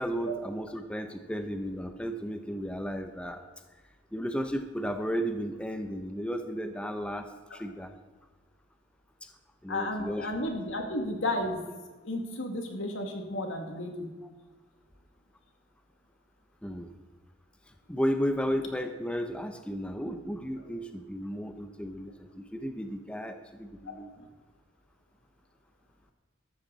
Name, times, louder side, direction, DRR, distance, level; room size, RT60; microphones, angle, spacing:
voice 1, 0.0-3.4 4.1-7.9 9.2-9.3 9.6-10.3 16.6-16.9 17.9-24.1, equal, 5° left, 7 dB, 0.6 m, -34 dB
voice 2, 9.7-11.6 12.0-14.1 24.2-24.3, left 1 dB, 80° left, 3 dB, 2.2 m, -33 dB
14.0 x 12.5 x 4.0 m, 1.3 s
head